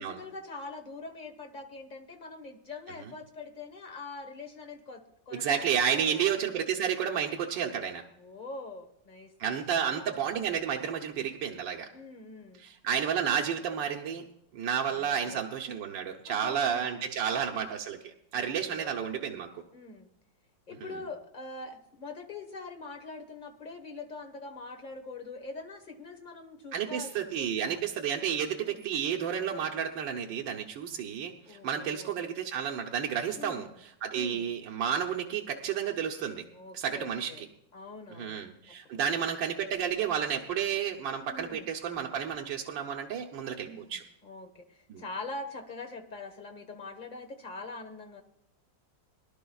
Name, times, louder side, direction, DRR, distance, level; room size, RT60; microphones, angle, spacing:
voice 1, 0.0-6.3 8.2-9.3 9.7-10.2 10.9-11.0 11.9-12.6 14.9-15.4 16.2-16.8 17.3-17.7 18.4-18.9 19.7-20.1 20.7-27.8 28.5-28.9 31.5-32.1 33.4-33.7 34.1-34.5 36.5-37.4 37.7-38.4 38.9-39.0 41.3-41.7 43.6-43.9 44.2-48.2, left 3 dB, 30° left, 4 dB, 1.3 m, -44 dB
voice 2, 5.3-8.0 9.4-11.9 12.6-14.2 14.5-19.6 20.8-21.0 26.7-36.4 36.7-37.5 38.1-44.0 44.9-45.0, right 8 dB, 85° right, 1 dB, 1.6 m, -31 dB
22.5 x 11.5 x 2.3 m, 0.77 s
omnidirectional pair, 1.9 m